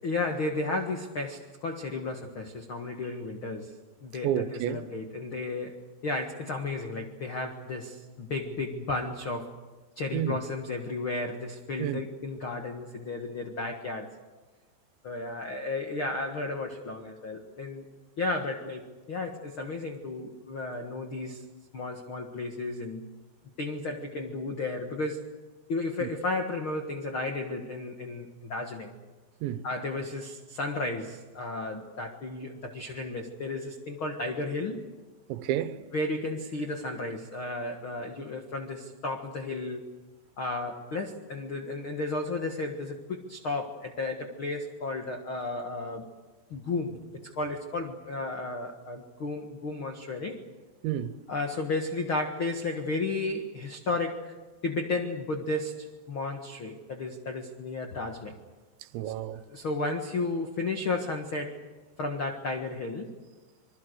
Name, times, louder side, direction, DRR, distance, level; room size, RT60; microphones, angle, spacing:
voice 1, 0.0-3.7 4.0-5.7 6.0-9.5 10.0-14.1 15.0-17.8 18.2-21.4 21.7-23.0 23.6-25.2 25.7-28.9 29.6-34.8 35.9-39.9 40.4-46.1 46.5-47.0 47.2-50.4 51.3-54.3 54.6-58.4 59.0-59.1 59.5-61.6 62.0-63.1, left 2 dB, 70° left, 1.2 m, -33 dB
voice 2, 4.2-4.8 10.1-10.4 11.8-12.0 26.0-26.1 29.4-29.6 35.3-35.8 50.8-51.2 58.9-59.4, right 11 dB, 90° right, 3.3 m, -30 dB
26.5 x 22.5 x 8.0 m
omnidirectional pair, 5.1 m